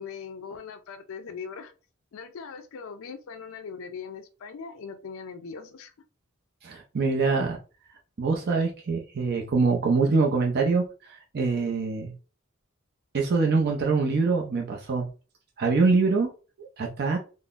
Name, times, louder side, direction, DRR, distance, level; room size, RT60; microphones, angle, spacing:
voice 1, 0.0-1.7 2.1-5.9, left 5 dB, 65° left, 0.4 m, -40 dB
voice 2, 6.6-7.6 8.2-12.1 13.1-15.1 15.6-16.3 16.6-17.2, right 4 dB, 50° right, 0.5 m, -24 dB
3.7 x 2.0 x 2.4 m
head